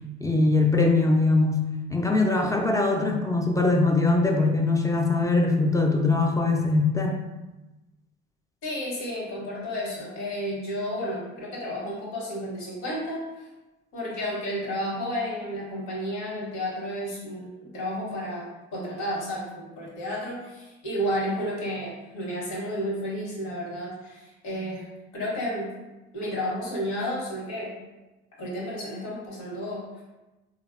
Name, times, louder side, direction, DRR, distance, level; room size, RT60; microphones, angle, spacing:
voice 1, 0.2-1.6 1.9-7.2, left 3 dB, 10° left, 2 dB, 0.3 m, -22 dB
voice 2, 8.6-13.5 13.9-24.9 25.1-25.7 26.1-27.7 28.4-30.0, equal, 75° left, -4 dB, 1.0 m, -32 dB
3.1 x 2.0 x 2.4 m, 1.1 s
hypercardioid pair, 55°, 29 cm